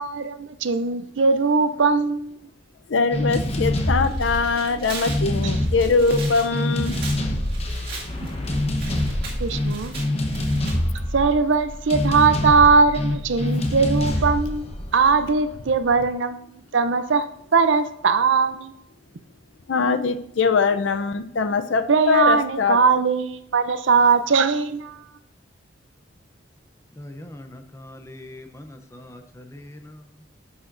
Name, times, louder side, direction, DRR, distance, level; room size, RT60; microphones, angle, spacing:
voice 1, 0.0-2.4 9.4-10.0 11.1-17.3 17.5-18.7 21.9-25.0, right 4 dB, 75° right, 10 dB, 0.6 m, -20 dB
voice 2, 2.9-6.9 19.7-22.8, left 4 dB, 75° left, 10 dB, 0.6 m, -22 dB
sound 1, 3.1-15.8, left 1 dB, 30° left, 0.9 m, -26 dB
Tearing, 3.9-10.8, right 4 dB, 50° right, 2.1 m, -39 dB
voice 3, 27.0-30.2, left 1 dB, 15° left, 7 dB, 0.6 m, -42 dB
11.0 x 6.9 x 2.6 m, 0.75 s
head